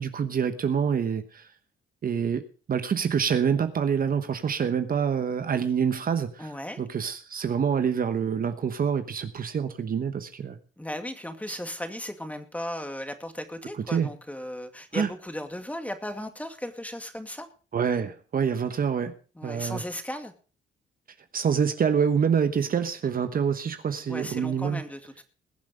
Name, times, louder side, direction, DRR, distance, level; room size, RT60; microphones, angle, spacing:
voice 1, 0.0-1.4 2.0-6.5 6.8-10.6 11.5-11.6 13.9-14.1 14.9-15.1 17.7-19.1 19.4-19.8 21.3-24.8, right 7 dB, 45° right, 1.1 m, -26 dB
voice 2, 6.4-6.8 10.8-17.5 19.4-20.3 24.1-25.2, left 1 dB, 5° left, 2.2 m, -36 dB
21.0 x 7.4 x 5.2 m
cardioid pair, 90°, 20 cm